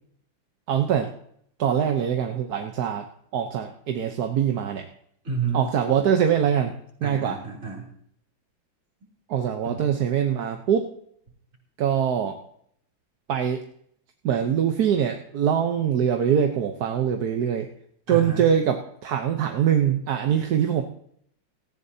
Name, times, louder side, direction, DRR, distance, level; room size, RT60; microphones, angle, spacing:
voice 1, 0.7-1.1 1.6-3.0 3.3-4.9 5.5-6.7 7.0-7.4 9.3-10.9 11.8-12.4 13.3-13.6 14.2-17.7 18.1-20.8, right 8 dB, 55° right, 4 dB, 1.3 m, -23 dB
voice 2, 5.2-5.6 7.0-7.9 9.6-9.9 18.1-18.5, right 6 dB, 40° right, -1 dB, 3.7 m, -29 dB
18.0 x 14.5 x 2.8 m, 0.66 s
omnidirectional pair, 2.2 m